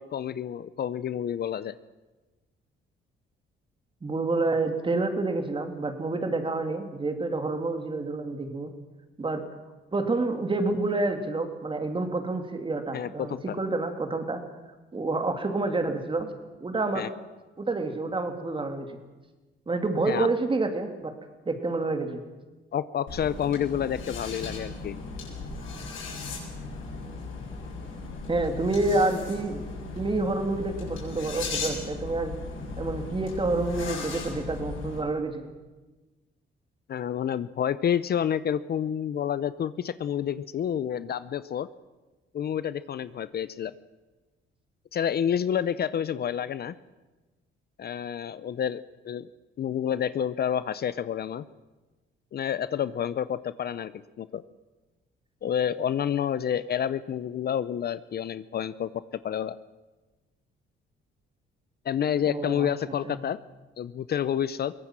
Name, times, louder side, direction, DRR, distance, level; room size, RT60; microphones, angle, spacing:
voice 1, 0.0-1.8 12.9-13.4 16.9-17.1 20.1-20.3 22.7-25.0 36.9-41.7 42.3-43.7 44.9-46.7 47.8-49.3 49.6-51.5 52.3-53.9 54.2-54.4 55.4-58.9 59.2-59.6 61.8-63.4 63.8-64.7, left 9 dB, 55° left, 16 dB, 0.7 m, -29 dB
voice 2, 4.0-8.7 9.2-9.4 9.9-14.4 14.9-16.3 16.6-17.1 17.6-19.0 19.7-21.1 21.4-22.2 28.3-29.7 30.0-32.3 32.8-35.5 62.2-63.2, right 2 dB, 25° right, 6 dB, 3.0 m, -28 dB
sound 1, 23.1-35.0, left 3 dB, 80° left, 7.7 m, -37 dB
22.5 x 18.0 x 7.5 m, 1.2 s
cardioid pair, 90°, 20 cm